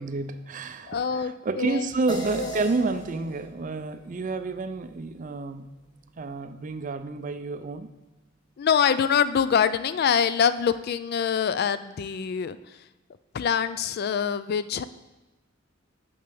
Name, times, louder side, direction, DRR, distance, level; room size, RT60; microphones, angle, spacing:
voice 1, 0.0-5.7 6.2-7.9, right 3 dB, 40° right, 11 dB, 0.4 m, -30 dB
voice 2, 0.9-1.9 2.4-2.5 8.6-12.6 13.3-14.8, left 7 dB, 50° left, 14 dB, 0.3 m, -24 dB
sound 1, 2.1-6.8, right 2 dB, 20° left, 1.4 m, -40 dB
6.4 x 5.8 x 6.8 m, 1.1 s
head